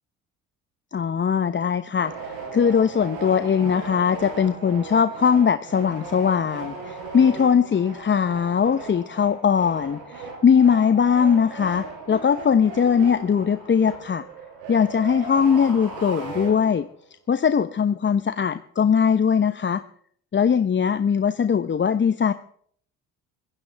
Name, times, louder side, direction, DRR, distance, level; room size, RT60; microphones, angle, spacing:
voice 1, 0.9-14.2 14.7-16.9 17.3-19.8 20.3-22.3, left 7 dB, 25° left, 11 dB, 0.9 m, -20 dB
sound 1, 2.0-17.0, right 3 dB, 75° right, 6.1 m, -37 dB
24.5 x 16.5 x 3.5 m, 0.62 s
hypercardioid pair, 55°, 42 cm